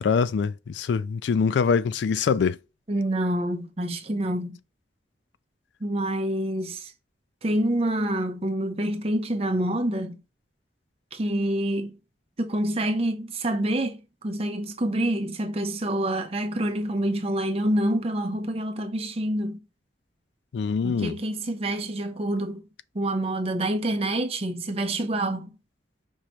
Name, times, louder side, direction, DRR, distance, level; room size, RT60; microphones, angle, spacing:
voice 1, 0.0-2.6 20.5-21.2, left 5 dB, 80° left, 0.3 m, -24 dB
voice 2, 2.9-4.6 5.8-6.9 7.4-10.2 11.1-12.0 12.4-19.6 20.8-22.6 22.9-25.5, right 1 dB, 35° right, 0.6 m, -27 dB
5.3 x 3.0 x 3.1 m
head